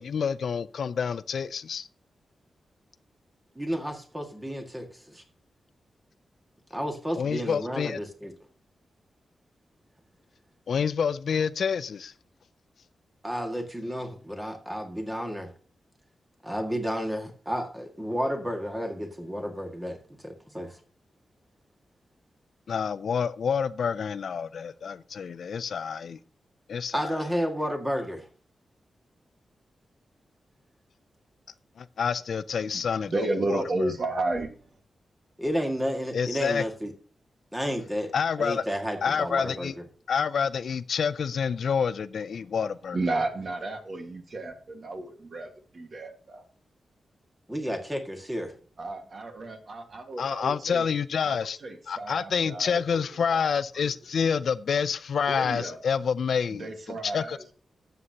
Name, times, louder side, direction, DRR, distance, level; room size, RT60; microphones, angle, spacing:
voice 1, 0.0-1.9 7.1-8.0 10.7-12.1 22.7-26.2 26.7-27.2 31.8-33.9 36.1-36.6 38.1-38.6 39.0-39.7 40.1-43.0 50.2-51.6 51.9-56.7 57.0-57.4, left 6 dB, 70° left, 0.4 m, -28 dB
voice 2, 3.6-5.2 6.7-8.3 13.2-15.5 16.4-20.7 26.9-28.3 35.4-36.9 37.5-38.1 38.4-39.7 47.5-48.5, equal, 10° right, 1.9 m, -31 dB
voice 3, 33.1-34.5 42.9-46.4 48.8-50.8 51.2-53.9 55.3-55.8 56.5-57.5, right 2 dB, 45° right, 1.7 m, -33 dB
12.5 x 8.1 x 2.9 m
wide cardioid pair, 140°, 0 cm